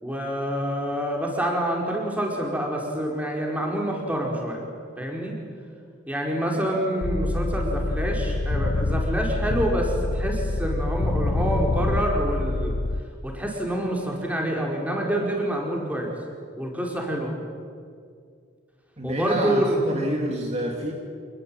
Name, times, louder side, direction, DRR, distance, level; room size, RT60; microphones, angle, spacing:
voice 1, 0.0-4.6 5.0-5.3 6.1-12.8 13.2-16.1 16.6-17.3 19.0-19.8, right 1 dB, 10° right, 0 dB, 5.0 m, -27 dB
sound 1, 7.0-13.0, left 2 dB, 75° left, 0.9 m, -26 dB
voice 2, 19.0-20.9, right 1 dB, 35° right, 0 dB, 2.7 m, -28 dB
28.0 x 20.5 x 9.1 m, 2.2 s
head